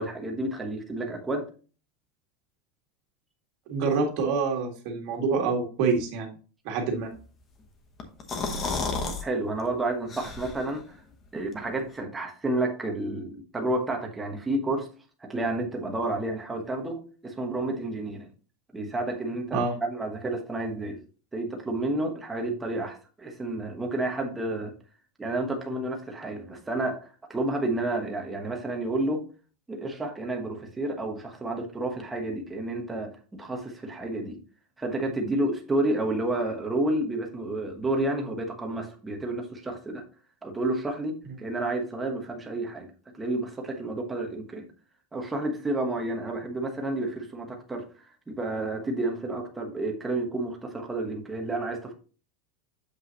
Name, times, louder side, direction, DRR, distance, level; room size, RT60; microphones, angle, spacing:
voice 1, 0.0-1.5 9.2-10.8 11.3-14.9 15.2-18.3 18.7-21.0 21.3-24.7 25.2-29.2 29.7-34.4 34.8-40.0 40.4-42.9 43.1-44.7 45.1-47.8 48.3-51.9, right 2 dB, 10° right, 2 dB, 1.1 m, -30 dB
voice 2, 3.7-6.3 6.7-7.1 19.5-19.7, right 4 dB, 40° right, 2 dB, 1.8 m, -26 dB
sound 1, 8.0-9.2 9.6-9.7 10.1-10.8, left 4 dB, 20° left, 1.0 m, -31 dB
7.8 x 5.5 x 2.9 m, 0.36 s
supercardioid pair, 180°, 0 cm